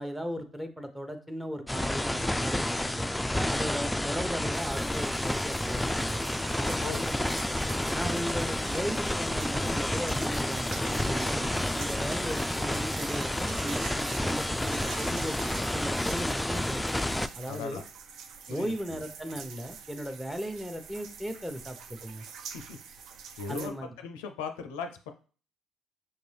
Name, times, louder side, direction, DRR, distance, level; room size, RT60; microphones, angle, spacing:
voice 1, 0.0-6.2 6.6-7.1 7.9-17.8 18.5-22.2 23.5-23.9, equal, 5° right, 6 dB, 0.8 m, -37 dB
sound 1, 1.7-17.3, left 1 dB, 10° left, 0.3 m, -30 dB
sound 2, 4.5-23.7, right 6 dB, 70° right, 0.5 m, -46 dB
voice 2, 17.5-17.8 18.5-19.0 22.5-22.8 23.4-25.1, left 6 dB, 90° left, 7 dB, 0.4 m, -38 dB
5.4 x 2.5 x 3.3 m, 0.40 s
hypercardioid pair, 55°, 0 cm